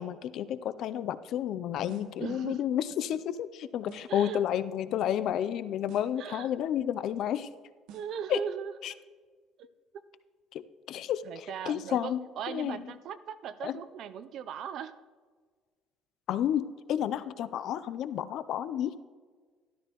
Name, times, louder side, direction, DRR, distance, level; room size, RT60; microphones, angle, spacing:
voice 1, 0.0-7.5 8.3-8.4 8.8-8.9 10.5-12.9 13.6-13.8 16.3-19.0, left 10 dB, 50° left, 14 dB, 0.4 m, -31 dB
sound 1, 1.9-2.3 3.9-4.3 5.9-6.3 7.9-8.3, right 8 dB, 80° right, 1.2 m, -52 dB
voice 2, 2.2-2.6 4.1-4.4 6.2-6.5 7.9-8.7 9.6-9.7 11.3-15.0, right 8 dB, 50° right, 13 dB, 0.5 m, -38 dB
13.0 x 13.0 x 3.0 m, 1.5 s
cardioid pair, 165°, 0 cm